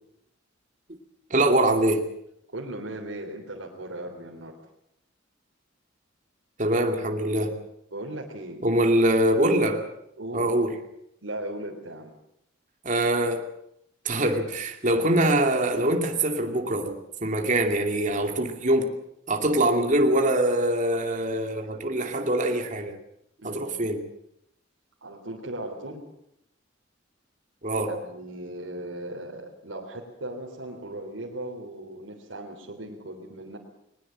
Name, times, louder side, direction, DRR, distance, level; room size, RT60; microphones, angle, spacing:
voice 1, 1.3-2.0 6.6-7.5 8.6-9.8 10.3-10.8 12.8-13.4 14.0-18.9 19.3-23.0 23.4-24.0 27.6-27.9, right 1 dB, 40° right, 4 dB, 2.5 m, -23 dB
voice 2, 2.5-4.6 7.9-8.6 10.2-10.5 11.2-12.1 23.4-23.7 25.0-26.0 27.7-33.6, right 1 dB, 80° right, -1 dB, 3.4 m, -37 dB
21.0 x 20.0 x 7.6 m, 0.78 s
head